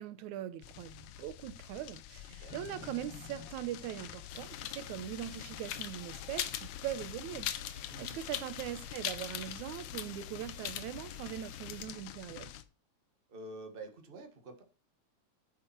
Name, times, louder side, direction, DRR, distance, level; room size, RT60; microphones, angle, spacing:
voice 1, 0.0-12.5, right 12 dB, 85° right, 2.3 m, -41 dB
sound 1, 0.6-12.6, left 13 dB, 90° left, 2.2 m, -48 dB
voice 2, 2.3-2.9 7.9-8.4 13.3-14.6, right 2 dB, 30° right, 1.1 m, -49 dB
sound 2, 2.5-4.7 5.3-5.7 6.0-7.8, left 6 dB, 50° left, 1.7 m, -54 dB
sound 3, 4.3-11.9, left 10 dB, 70° left, 2.0 m, -42 dB
10.0 x 8.7 x 4.5 m
omnidirectional pair, 3.3 m